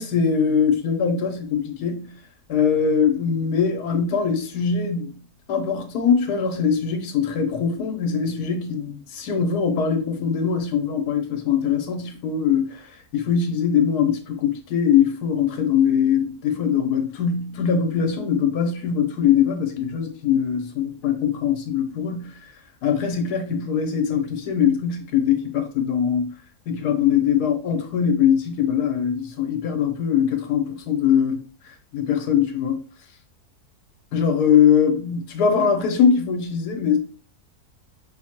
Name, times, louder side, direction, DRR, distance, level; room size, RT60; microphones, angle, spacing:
voice 1, 0.0-2.1 2.5-5.2 5.5-12.9 13.1-22.3 22.8-26.3 26.7-31.4 31.9-32.8 34.1-37.0, left 7 dB, 80° left, 1.3 m, -22 dB
5.2 x 2.1 x 2.9 m
omnidirectional pair, 1.7 m